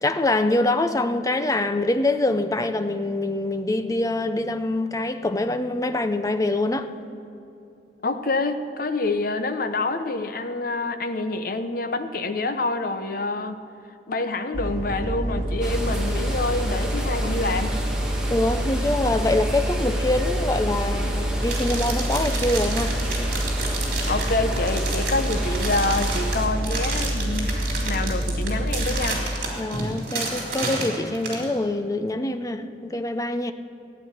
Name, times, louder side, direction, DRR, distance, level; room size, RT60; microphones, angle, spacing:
voice 1, 0.0-6.9 18.3-23.0 29.6-33.5, left 2 dB, 20° left, 0.6 m, -24 dB
voice 2, 8.0-13.6 14.1-17.8 24.1-29.2, left 2 dB, 55° left, 0.8 m, -27 dB
sound 1, 14.5-29.0, equal, 35° right, 2.8 m, -27 dB
sound 2, 15.6-26.5, right 1 dB, 5° right, 1.8 m, -34 dB
sound 3, 21.4-31.4, right 3 dB, 55° right, 3.4 m, -31 dB
15.0 x 9.6 x 7.2 m
head